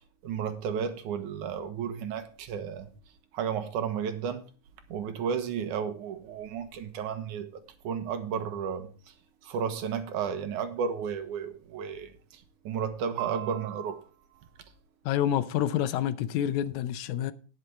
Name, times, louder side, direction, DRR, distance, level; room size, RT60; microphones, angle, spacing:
voice 1, 0.2-2.9 3.3-4.4 4.9-7.5 7.8-8.9 9.4-14.0, right 7 dB, 90° right, 2.7 m, -33 dB
voice 2, 15.1-17.3, left 11 dB, 80° left, 2.1 m, -28 dB
18.5 x 6.8 x 3.3 m
omnidirectional pair, 3.4 m